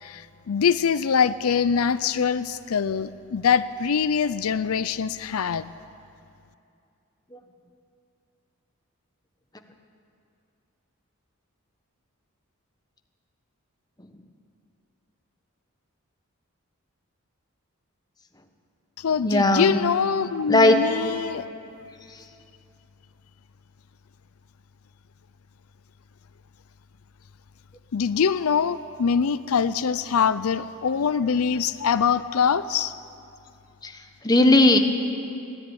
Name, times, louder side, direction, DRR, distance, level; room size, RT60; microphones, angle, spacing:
voice 1, 0.0-5.7 19.0-21.5 27.9-32.9, left 6 dB, 80° left, 14 dB, 0.5 m, -23 dB
voice 2, 19.2-19.8 20.5-20.8 33.8-33.9 34.2-34.8, left 2 dB, 20° left, 5 dB, 1.2 m, -17 dB
20.0 x 13.5 x 10.0 m, 2.6 s
head